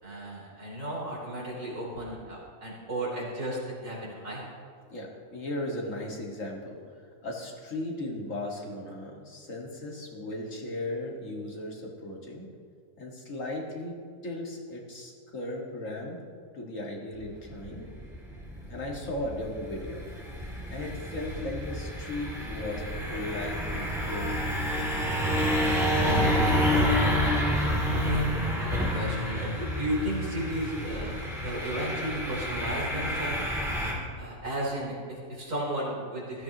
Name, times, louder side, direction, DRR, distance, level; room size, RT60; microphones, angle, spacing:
voice 1, 0.0-4.4 27.9-33.4 34.2-36.4, right 1 dB, 70° right, -5 dB, 4.1 m, -34 dB
voice 2, 4.9-6.8 7.2-12.5 13.0-14.0 14.2-16.2 16.5-17.9 18.7-20.0 20.7-22.8 23.1-24.5, left 1 dB, 70° left, -1 dB, 2.2 m, -36 dB
sound 1, 17.1-33.9, equal, ahead, 2.8 m, -29 dB
16.0 x 13.0 x 3.0 m, 2.1 s
omnidirectional pair, 1.4 m